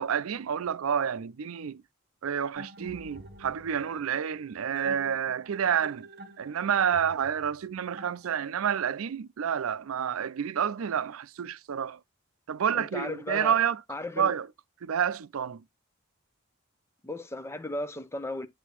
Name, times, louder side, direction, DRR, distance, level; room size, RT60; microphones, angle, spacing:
voice 1, 0.0-1.8 2.2-6.1 6.4-12.0 12.5-13.8 14.2-14.5 14.8-15.6, right 8 dB, 90° right, 0.4 m, -29 dB
sound 1, 2.6-8.7, right 4 dB, 50° right, 1.2 m, -46 dB
voice 2, 12.7-13.6 13.9-14.3 17.0-18.5, left 2 dB, 15° left, 0.6 m, -35 dB
8.1 x 2.7 x 5.8 m
head